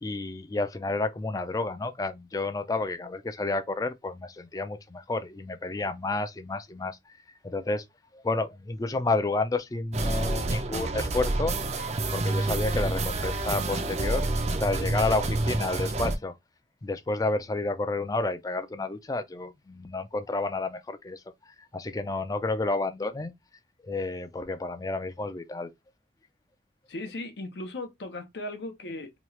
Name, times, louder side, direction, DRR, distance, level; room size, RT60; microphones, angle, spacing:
voice 1, 0.0-7.0 7.4-7.8 8.1-11.5 12.1-14.3 14.6-16.4 16.8-21.2 21.7-23.3 23.8-25.7, left 3 dB, 20° left, 0.4 m, -30 dB
sound 1, 9.9-16.2, right 2 dB, 40° right, 0.4 m, -28 dB
voice 2, 26.9-29.2, left 2 dB, 75° left, 0.7 m, -37 dB
3.0 x 2.3 x 3.0 m
head